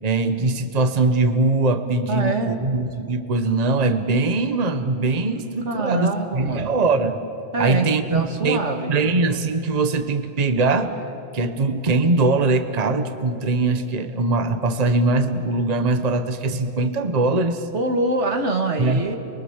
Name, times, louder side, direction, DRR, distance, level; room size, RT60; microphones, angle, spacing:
voice 1, 0.0-7.2 7.6-8.6 8.8-10.9 11.3-17.7 18.8-19.0, right 3 dB, 35° right, 9 dB, 1.1 m, -21 dB
voice 2, 2.1-2.6 5.6-6.7 7.5-8.9 17.7-19.2, right 2 dB, 80° right, 4 dB, 2.2 m, -24 dB
30.0 x 23.5 x 7.3 m, 2.9 s
omnidirectional pair, 1.2 m